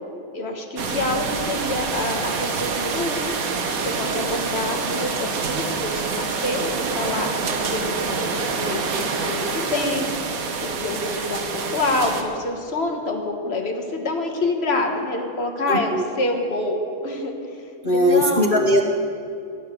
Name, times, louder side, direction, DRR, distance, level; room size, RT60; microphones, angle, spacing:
voice 1, 0.3-3.2 3.8-10.1 10.6-17.6 17.9-18.5, left 2 dB, 35° left, 3 dB, 1.4 m, -27 dB
sound 1, 0.8-12.2, right 4 dB, 50° right, 1.2 m, -26 dB
voice 2, 15.7-16.0 17.8-18.8, equal, 55° left, -1 dB, 0.5 m, -19 dB
17.0 x 9.0 x 6.6 m, 2.5 s
omnidirectional pair, 2.3 m